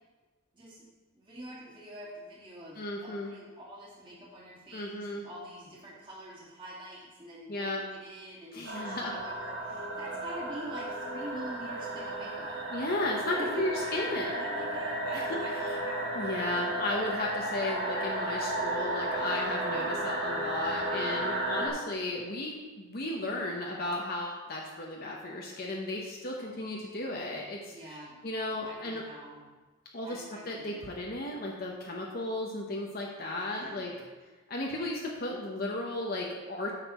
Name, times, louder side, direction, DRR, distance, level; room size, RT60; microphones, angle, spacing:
voice 1, 0.5-0.9 1.1-12.6 13.4-16.2 27.7-28.3 28.6-29.5 30.0-30.9 33.5-34.0, right 1 dB, 25° right, -8 dB, 2.3 m, -45 dB
voice 2, 2.8-3.3 4.7-5.2 7.5-7.8 8.5-9.1 12.7-14.3 15.1-15.3 15.7-15.8 16.1-27.7 28.2-29.0 29.9-33.9 34.5-36.7, left 2 dB, 45° left, -2 dB, 0.9 m, -34 dB
sound 1, 8.6-21.7, right 1 dB, 65° right, 1.7 m, -34 dB
9.0 x 6.6 x 4.3 m, 1.3 s
head